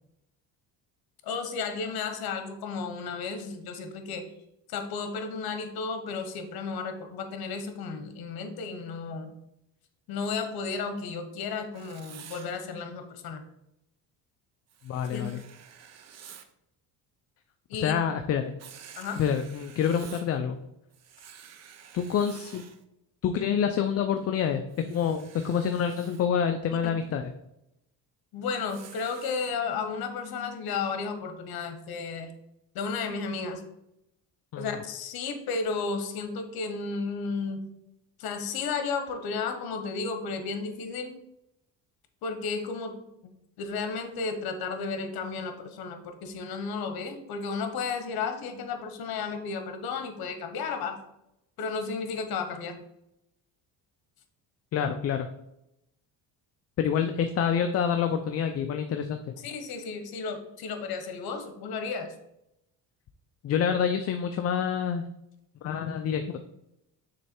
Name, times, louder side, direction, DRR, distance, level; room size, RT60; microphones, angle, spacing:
voice 1, 1.2-4.3 4.7-9.3 10.1-13.4 15.1-15.2 17.7-18.0 19.0-19.2 28.3-32.3 32.7-33.6 34.6-37.6 38.2-41.1 42.2-43.0 43.6-51.0 51.6-52.8 59.4-62.1, left 4 dB, 65° left, 7 dB, 1.1 m, -33 dB
Writing, 11.7-12.5 14.7-16.5 18.6-20.4 20.9-22.8 24.7-26.3 28.7-29.5, right 8 dB, 40° right, 0.6 m, -50 dB
voice 2, 14.8-15.4 17.7-18.5 19.2-20.6 21.9-22.6 23.2-27.2 34.5-34.8 54.7-55.3 56.8-59.4 63.4-65.1 65.6-66.4, left 7 dB, 40° left, 7 dB, 0.4 m, -27 dB
6.6 x 3.2 x 4.4 m, 0.84 s
cardioid pair, 120°, 40 cm